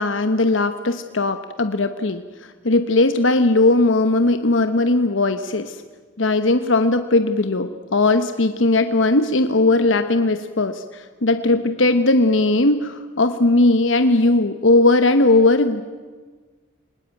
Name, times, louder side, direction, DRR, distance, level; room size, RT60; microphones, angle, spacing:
voice 1, 0.0-2.2 2.6-5.8 6.2-15.8, left 2 dB, 75° left, 9 dB, 1.1 m, -18 dB
28.5 x 20.0 x 9.2 m, 1.5 s
head